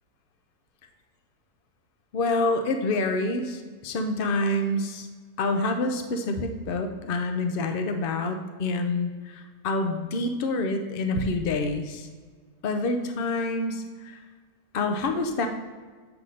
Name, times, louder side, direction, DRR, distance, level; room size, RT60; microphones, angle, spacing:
voice 1, 2.1-5.1 5.4-12.1 12.6-14.2 14.7-15.5, left 2 dB, 70° left, 6 dB, 0.5 m, -27 dB
7.8 x 3.5 x 5.1 m, 1.5 s
omnidirectional pair, 1.7 m